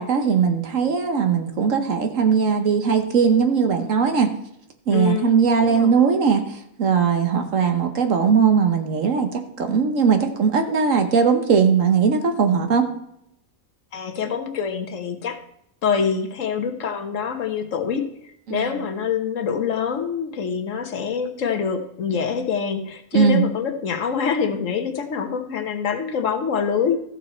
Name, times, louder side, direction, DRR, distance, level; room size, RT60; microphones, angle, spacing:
voice 1, 0.0-4.3 4.9-12.9 18.5-18.7 23.1-23.5, right 6 dB, 65° right, 6 dB, 1.4 m, -19 dB
voice 2, 4.9-6.0 13.9-15.4 15.8-27.0, left 6 dB, 65° left, 5 dB, 1.5 m, -25 dB
14.0 x 6.8 x 4.3 m, 0.77 s
omnidirectional pair, 1.5 m